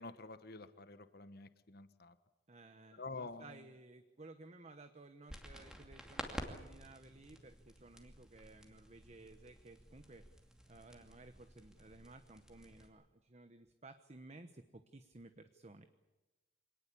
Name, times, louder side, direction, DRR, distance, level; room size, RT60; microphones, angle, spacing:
voice 1, 0.0-2.2 3.0-3.6, left 3 dB, 55° left, 12 dB, 1.2 m, -49 dB
voice 2, 2.5-10.4 10.7-15.9, right 2 dB, 35° right, 9 dB, 1.0 m, -57 dB
sound 1, 5.3-12.9, equal, 5° right, 2.5 m, -51 dB
25.5 x 19.0 x 8.5 m, 1.1 s
head